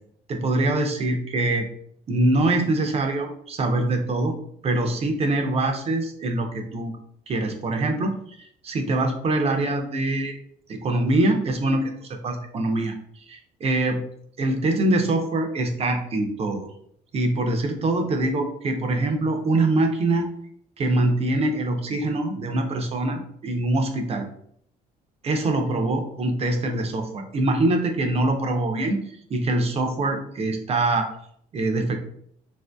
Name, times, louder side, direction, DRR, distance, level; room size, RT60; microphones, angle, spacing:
voice 1, 0.3-1.7 2.1-4.3 4.6-6.9 7.3-10.4 10.7-13.0 13.3-14.0 14.4-16.7 17.1-20.3 20.8-24.2 25.2-29.0 29.3-31.1 31.5-32.0, right 2 dB, 35° right, 4 dB, 0.6 m, -24 dB
4.0 x 2.6 x 2.2 m, 0.67 s
cardioid pair, 110°, 17 cm